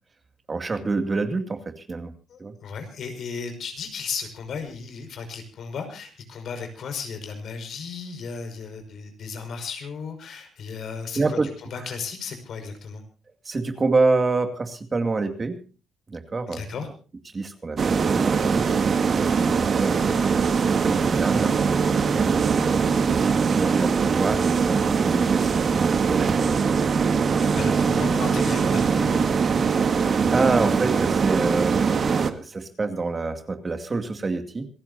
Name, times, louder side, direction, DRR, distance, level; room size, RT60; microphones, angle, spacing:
voice 1, 0.5-2.1 2.4-2.5 11.1-11.5 13.4-15.6 16.1-16.6 17.3-18.7 19.2-25.7 26.0-26.2 27.3-27.8 30.3-34.7, right 3 dB, 30° right, 7 dB, 2.4 m, -27 dB
voice 2, 2.3-11.4 11.7-13.0 16.5-16.9 27.5-29.2, left 5 dB, 65° left, 7 dB, 5.5 m, -35 dB
sound 1, 17.8-32.3, right 5 dB, 45° right, 1.7 m, -22 dB
27.0 x 15.0 x 2.7 m, 0.37 s
cardioid pair, 110°, 0 cm